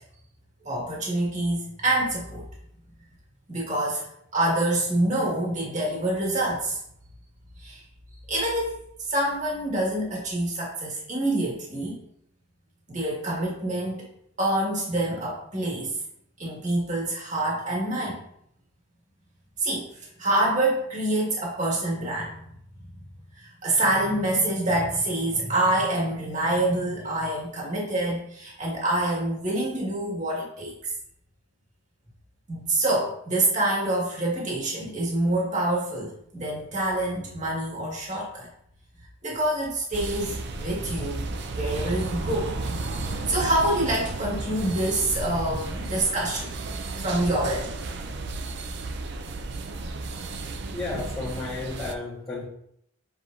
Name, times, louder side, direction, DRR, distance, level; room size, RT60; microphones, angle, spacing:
voice 1, 0.7-2.5 3.5-4.1 4.3-6.8 7.6-7.8 8.3-8.8 9.0-12.0 12.9-14.1 14.4-16.0 16.4-18.2 19.6-22.6 23.3-30.9 32.5-38.5 39.2-46.5 47.0-47.7, right 1 dB, 35° right, -4 dB, 1.9 m, -26 dB
sound 1, 39.9-51.9, right 3 dB, 55° right, 0.5 m, -33 dB
voice 2, 50.7-52.5, left 3 dB, 15° left, -11 dB, 1.3 m, -33 dB
7.7 x 4.7 x 2.7 m, 0.72 s
head